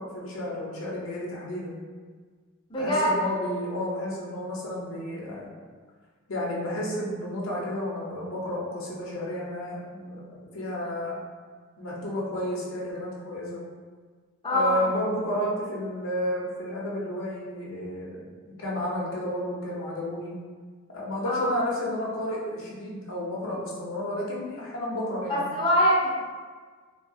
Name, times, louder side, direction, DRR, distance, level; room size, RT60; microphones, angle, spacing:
voice 1, 0.0-1.7 2.8-5.5 6.3-10.2 10.5-11.2 11.8-13.6 14.5-18.2 18.6-20.3 20.9-25.4, left 1 dB, 75° left, -5 dB, 0.6 m, -31 dB
voice 2, 2.7-3.1 14.4-14.8 21.2-21.5 25.3-26.2, equal, 25° left, -7 dB, 0.6 m, -23 dB
2.7 x 2.3 x 2.6 m, 1.5 s
head